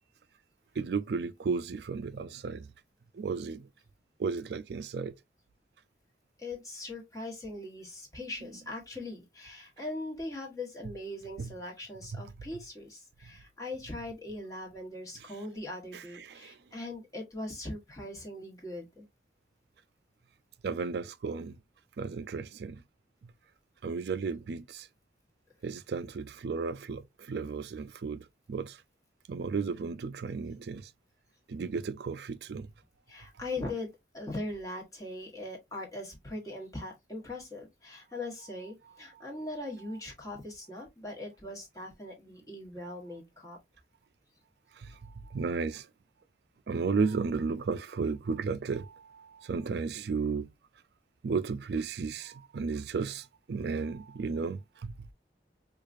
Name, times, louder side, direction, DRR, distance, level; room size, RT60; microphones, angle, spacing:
voice 1, 0.8-2.7 3.2-3.7 4.2-5.1 11.4-11.5 12.1-12.3 15.9-16.5 20.6-21.5 22.0-22.8 23.8-24.9 25.6-28.2 28.5-28.8 29.3-30.9 31.5-32.7 44.8-44.9 45.3-45.8 46.7-50.5 51.2-54.9, right 5 dB, 65° right, 0.4 m, -34 dB
voice 2, 6.4-19.0 33.1-43.6, left 2 dB, 20° left, 1.3 m, -40 dB
4.6 x 2.4 x 2.5 m
head